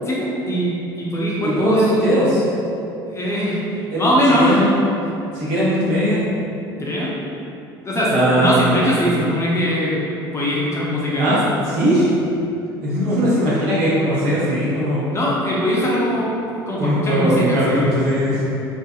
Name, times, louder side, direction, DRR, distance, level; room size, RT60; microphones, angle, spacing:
voice 1, 0.1-1.9 3.1-4.6 6.8-7.1 7.8-10.0 10.3-11.3 15.1-17.9, equal, 20° left, -6 dB, 0.6 m, -21 dB
voice 2, 1.4-2.4 3.9-4.0 4.4-4.7 5.3-6.2 8.1-8.7 11.2-12.1 12.8-15.1 16.8-18.4, equal, 60° right, -9 dB, 1.0 m, -19 dB
2.6 x 2.5 x 2.4 m, 2.8 s
figure-of-eight pair, 65°, 13 cm